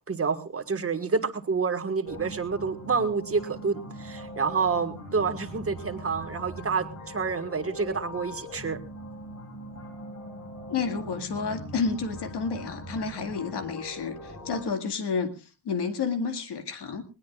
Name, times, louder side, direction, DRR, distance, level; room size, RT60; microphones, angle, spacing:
voice 1, 0.1-8.8, right 5 dB, 35° right, 8 dB, 1.6 m, -28 dB
sound 1, 2.0-14.6, left 1 dB, 40° left, 6.1 m, -41 dB
voice 2, 10.7-17.0, left 5 dB, 70° left, 6 dB, 2.1 m, -30 dB
20.0 x 19.0 x 2.4 m, 0.32 s
cardioid pair, 105°, 42 cm